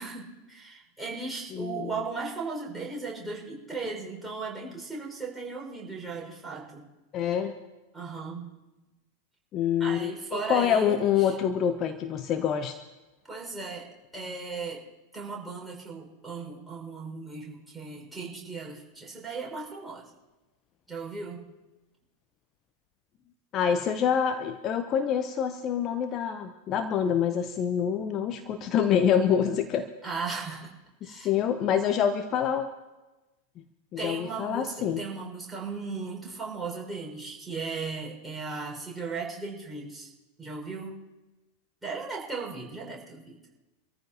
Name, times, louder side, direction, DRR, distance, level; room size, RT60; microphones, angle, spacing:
voice 1, 0.0-6.8 7.9-8.5 9.8-11.4 13.3-13.9 14.1-14.8 15.1-20.0 20.9-21.5 30.0-30.7 31.0-31.3 34.0-40.1 40.4-41.0 41.8-43.4, right 4 dB, 5° right, -4 dB, 5.5 m, -36 dB
voice 2, 1.5-1.9 7.1-7.5 9.5-12.8 23.5-29.9 31.0-32.7 33.9-35.0, left 8 dB, 35° left, 8 dB, 0.8 m, -26 dB
26.0 x 14.0 x 2.9 m, 1.1 s
figure-of-eight pair, 90°, 0 cm